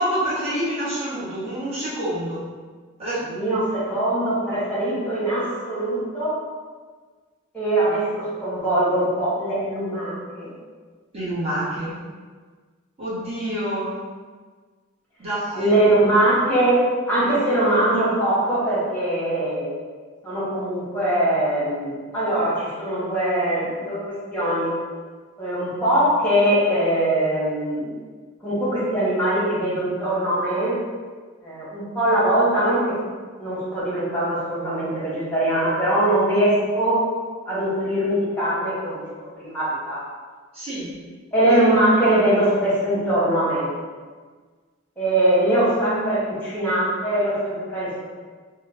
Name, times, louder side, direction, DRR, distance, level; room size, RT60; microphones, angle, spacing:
voice 1, 0.0-2.4 3.0-3.2 11.1-12.0 13.0-13.9 15.2-15.7 40.5-40.9, right 1 dB, 30° right, -11 dB, 1.3 m, -27 dB
voice 2, 3.3-6.4 7.5-10.5 15.5-16.8 17.1-19.7 20.2-24.0 24.3-24.7 25.4-27.9 28.4-30.7 31.4-32.8 33.4-37.0 37.5-39.0 39.4-40.0 41.3-43.7 45.0-48.0, right 1 dB, 5° left, -9 dB, 1.2 m, -21 dB
3.2 x 2.2 x 3.5 m, 1.5 s
head